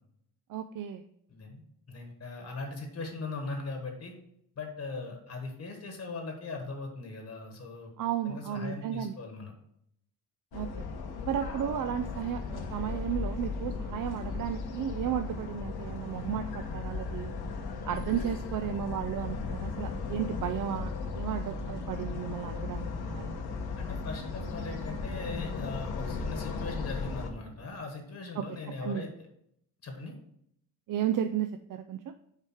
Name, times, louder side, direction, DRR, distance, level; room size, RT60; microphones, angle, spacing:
voice 1, 0.5-1.0 8.0-9.2 10.5-10.9 11.3-17.3 17.8-23.4 28.4-28.5 28.8-29.0 30.9-32.1, right 9 dB, 60° right, 8 dB, 0.5 m, -34 dB
voice 2, 1.3-1.6 1.9-4.1 4.5-7.9 8.2-9.5 23.8-29.3 29.8-30.1, left 3 dB, 40° left, 4 dB, 1.3 m, -39 dB
sound 1, 10.5-27.3, left 4 dB, 75° left, 1.1 m, -36 dB
sound 2, 13.3-27.8, equal, ahead, 0.4 m, -54 dB
7.4 x 4.9 x 4.5 m, 0.73 s
wide cardioid pair, 155°, 38 cm